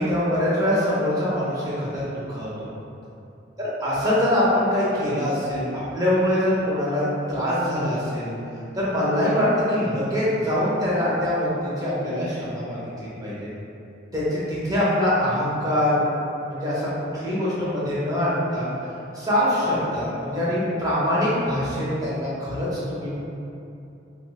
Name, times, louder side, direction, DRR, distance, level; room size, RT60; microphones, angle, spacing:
voice 1, 0.0-2.7 3.6-5.7 5.9-7.0 7.3-8.3 8.7-13.5 14.1-16.0 16.4-16.9 17.1-18.7 19.1-23.2, left 1 dB, 20° right, -9 dB, 0.9 m, -24 dB
3.0 x 2.1 x 4.0 m, 2.7 s
head